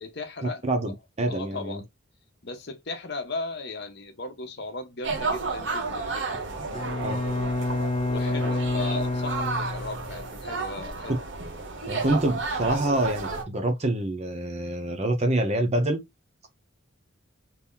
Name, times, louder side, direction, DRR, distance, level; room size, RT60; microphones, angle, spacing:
voice 1, 0.0-0.6 1.3-1.9 2.4-6.3 8.1-11.2, left 3 dB, 50° left, 0.8 m, -37 dB
voice 2, 0.6-1.8 7.0-7.2 11.9-16.0, right 1 dB, 30° right, 0.7 m, -26 dB
sound 1, 5.0-13.4, right 3 dB, 60° right, 0.9 m, -32 dB
Bowed string instrument, 6.7-10.3, left 2 dB, 30° left, 0.3 m, -28 dB
2.8 x 2.5 x 3.7 m
head